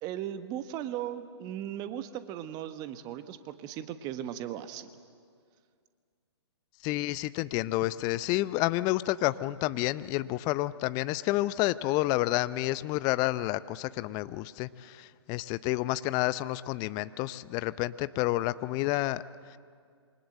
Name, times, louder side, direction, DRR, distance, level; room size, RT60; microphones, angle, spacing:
voice 1, 0.0-4.9, right 11 dB, 25° right, 10 dB, 1.4 m, -37 dB
voice 2, 6.8-19.2, left 17 dB, 25° left, 16 dB, 0.6 m, -29 dB
27.5 x 24.0 x 7.9 m, 2.1 s
figure-of-eight pair, 120°, 14 cm